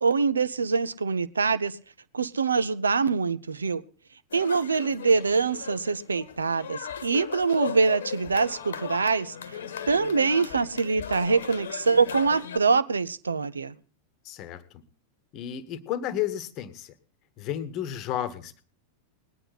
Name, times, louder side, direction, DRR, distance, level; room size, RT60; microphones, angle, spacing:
voice 1, 0.0-1.8 2.1-3.8 4.3-9.6 9.9-13.7, right 4 dB, 75° right, 0.5 m, -24 dB
sound 1, 4.3-12.6, left 8 dB, 65° left, 1.1 m, -38 dB
voice 2, 14.2-14.6 15.3-16.9 17.4-18.6, left 11 dB, 40° left, 1.1 m, -32 dB
19.5 x 10.0 x 4.1 m
figure-of-eight pair, 90°, 0 cm